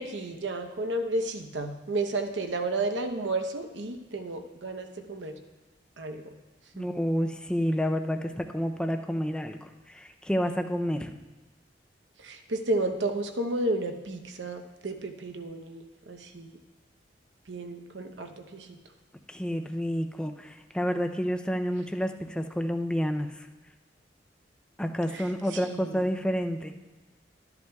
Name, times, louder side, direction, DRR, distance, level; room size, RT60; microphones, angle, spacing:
voice 1, 0.0-5.3 6.0-6.4 6.8-6.9 12.2-16.6 17.5-18.7 25.1-26.0, right 2 dB, 80° right, 5 dB, 0.8 m, -32 dB
voice 2, 6.7-11.1 19.3-23.5 24.8-26.7, equal, 5° left, 5 dB, 0.4 m, -29 dB
13.0 x 10.5 x 2.3 m, 1.2 s
head